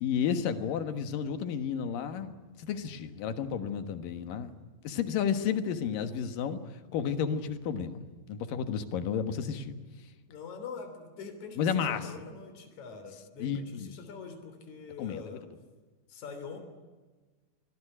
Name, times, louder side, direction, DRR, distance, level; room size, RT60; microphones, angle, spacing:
voice 1, 0.0-2.3 2.6-4.5 4.8-6.6 6.9-8.0 8.3-9.7 11.6-12.0 13.4-13.9 15.0-15.2, left 7 dB, 75° left, 9 dB, 3.1 m, -31 dB
voice 2, 10.3-15.4 16.1-16.6, left 5 dB, 55° left, 6 dB, 4.5 m, -44 dB
25.5 x 20.0 x 10.0 m, 1.3 s
omnidirectional pair, 4.1 m